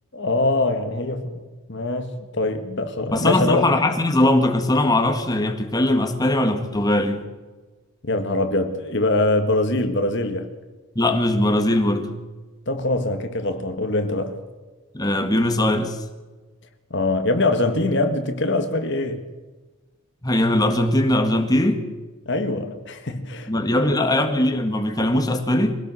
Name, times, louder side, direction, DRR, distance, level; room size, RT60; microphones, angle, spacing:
voice 1, 0.1-1.4 1.7-3.8 8.0-10.5 12.7-14.4 16.9-19.2 22.2-24.0, left 2 dB, 55° left, 1.6 m, -23 dB
voice 2, 3.1-7.2 11.0-12.1 14.9-16.0 20.2-21.8 23.5-25.8, left 1 dB, 20° left, 1.8 m, -20 dB
23.5 x 17.5 x 6.3 m
head